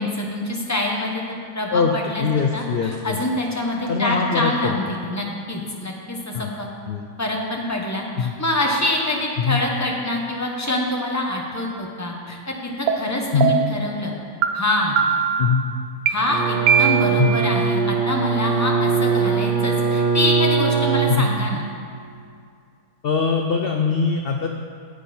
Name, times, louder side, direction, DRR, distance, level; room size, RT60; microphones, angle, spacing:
voice 1, 0.0-2.2 2.5-6.7 7.2-14.1 14.5-15.0 16.1-21.6, left 1 dB, 15° left, 0 dB, 0.8 m, -25 dB
voice 2, 2.2-3.2 3.9-4.7 6.3-6.5 6.9-7.0 8.2-8.3 9.4-9.6 13.3-13.5 15.4-15.6 17.2-17.3 21.1-21.3 23.0-24.5, left 5 dB, 65° left, 3 dB, 0.5 m, -21 dB
sound 1, 12.9-13.0 13.4-13.8 14.4-14.5 15.0-15.4 16.1-16.2 16.7-17.3, right 7 dB, 75° right, 1.0 m, -19 dB
Bowed string instrument, 16.3-21.7, right 6 dB, 35° right, 1.0 m, -21 dB
9.4 x 8.1 x 4.3 m, 2.3 s
omnidirectional pair, 1.6 m